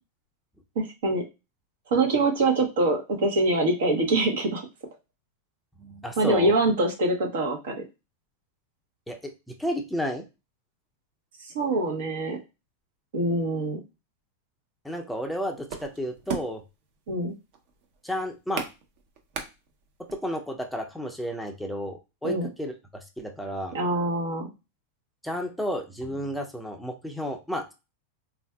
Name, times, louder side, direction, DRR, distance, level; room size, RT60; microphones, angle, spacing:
voice 1, 0.7-1.2 1.9-4.6 6.2-7.7 11.4-12.4 13.1-13.8 17.1-17.3 22.2-22.5 23.7-24.5, right 2 dB, 75° right, 2 dB, 1.0 m, -24 dB
voice 2, 5.8-6.5 9.1-10.2 14.8-16.6 18.0-18.7 20.2-22.7 23.2-23.7 25.2-27.7, equal, ahead, 3 dB, 0.5 m, -32 dB
sound 1, 15.1-20.1, right 6 dB, 50° right, 0.7 m, -37 dB
3.5 x 2.5 x 2.2 m, 0.26 s
supercardioid pair, 130°, 0 cm